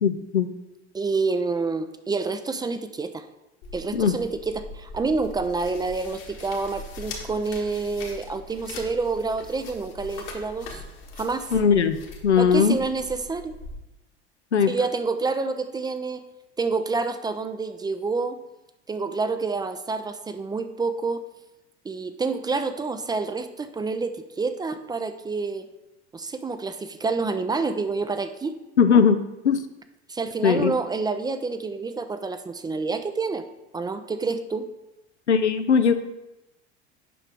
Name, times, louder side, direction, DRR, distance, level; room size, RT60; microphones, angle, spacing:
voice 1, 0.0-0.5 3.9-4.2 11.5-12.8 14.5-14.7 28.8-29.6 30.4-30.7 35.3-35.9, left 6 dB, 90° left, 10 dB, 0.5 m, -19 dB
voice 2, 0.9-3.3 3.7-10.8 11.2-11.5 12.4-13.6 14.7-16.2 16.6-18.4 18.9-21.2 21.8-25.7 26.1-28.6 30.1-33.4 33.7-34.7, right 4 dB, 15° right, 10 dB, 0.4 m, -28 dB
sound 1, 3.6-13.8, left 3 dB, 60° left, 1.6 m, -41 dB
8.4 x 5.7 x 3.4 m, 0.95 s
figure-of-eight pair, 70°, 33 cm